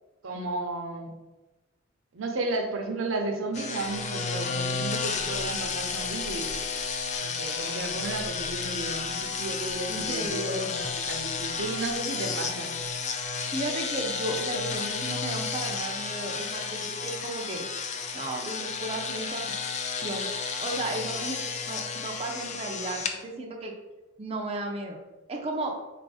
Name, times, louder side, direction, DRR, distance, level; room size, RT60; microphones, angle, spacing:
voice 1, 0.2-1.1 2.1-6.5 7.2-12.7, right 2 dB, 75° right, 3 dB, 0.7 m, -33 dB
sound 1, 3.5-23.1, left 5 dB, 35° left, 0.4 m, -32 dB
voice 2, 9.9-10.7 13.2-17.6 18.1-19.4 20.0-20.3 20.6-23.7 24.2-25.0 25.3-25.8, right 2 dB, 30° right, 0 dB, 0.5 m, -34 dB
4.1 x 2.6 x 4.7 m, 1.1 s
head